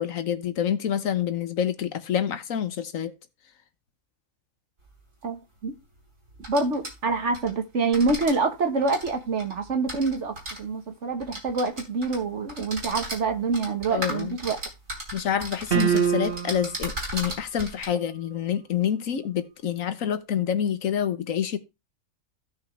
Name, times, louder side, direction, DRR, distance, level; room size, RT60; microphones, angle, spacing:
voice 1, 0.0-3.1 13.9-14.4 15.1-21.6, left 9 dB, 80° left, 1.4 m, -27 dB
sound 1, 4.9-5.0 6.3-7.5 7.8-8.3 8.8-10.6 11.2-12.2 12.5-17.9, right 1 dB, 80° right, 4.2 m, -36 dB
voice 2, 5.2-5.8 6.5-14.6, right 3 dB, 60° right, 1.7 m, -26 dB
sound 2, 15.7-16.8, right 8 dB, 45° right, 1.4 m, -24 dB
16.0 x 5.8 x 3.3 m
omnidirectional pair, 1.4 m